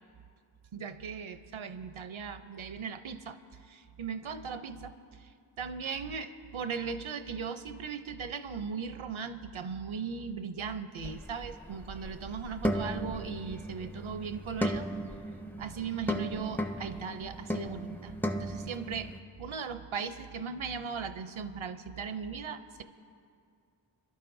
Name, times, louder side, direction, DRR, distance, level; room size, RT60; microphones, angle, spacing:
voice 1, 0.7-3.4 3.6-5.3 5.6-14.9 15.6-19.1 19.4-22.8, right 6 dB, 85° right, 10 dB, 0.6 m, -38 dB
sound 1, 11.0-19.2, equal, 5° left, 0.5 m, -36 dB
27.5 x 11.5 x 2.6 m, 2.3 s
wide cardioid pair, 40°, 46 cm